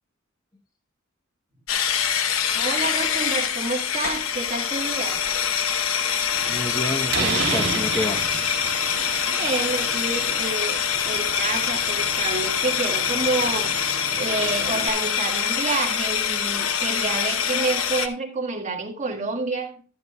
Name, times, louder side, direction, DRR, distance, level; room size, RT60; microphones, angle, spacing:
sound 1, 1.7-18.1, left 8 dB, 75° left, 0.9 m, -25 dB
voice 1, 2.5-5.2 9.3-13.7 14.2-19.7, right 3 dB, 35° right, 2 dB, 1.6 m, -28 dB
Slam, 6.3-14.9, right 5 dB, 60° right, 2.0 m, -33 dB
voice 2, 6.5-8.7, left 1 dB, 20° left, 5 dB, 0.9 m, -30 dB
12.5 x 12.0 x 2.2 m, 0.39 s
head